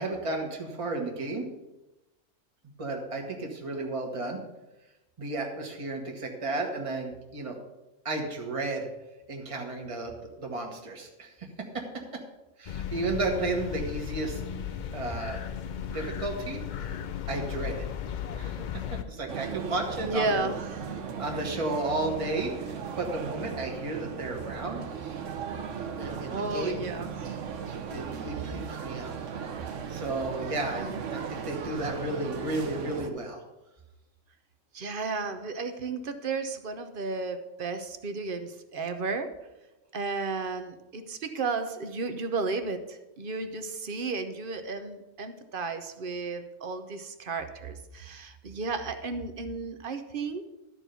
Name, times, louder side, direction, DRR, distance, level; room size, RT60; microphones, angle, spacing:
voice 1, 0.0-1.5 2.8-4.4 5.2-7.6 8.0-8.9 9.3-11.5 11.7-12.0 12.6-14.4 14.9-15.4 15.9-16.6 17.3-17.9 18.3-18.8 19.1-20.5 21.2-24.8 26.0-26.8 27.9-29.1 29.6-30.8 31.1-33.4, right 2 dB, 25° right, 1 dB, 1.4 m, -33 dB
sound 1, 12.7-19.0, left 8 dB, 55° left, 0.5 m, -35 dB
sound 2, 19.3-33.1, right 7 dB, 75° right, 1.2 m, -37 dB
voice 2, 20.0-21.1 26.3-27.4 30.8-31.1 34.7-39.3 39.9-50.5, right 3 dB, 50° right, 9 dB, 0.9 m, -33 dB
12.5 x 4.5 x 6.8 m, 1.0 s
omnidirectional pair, 1.3 m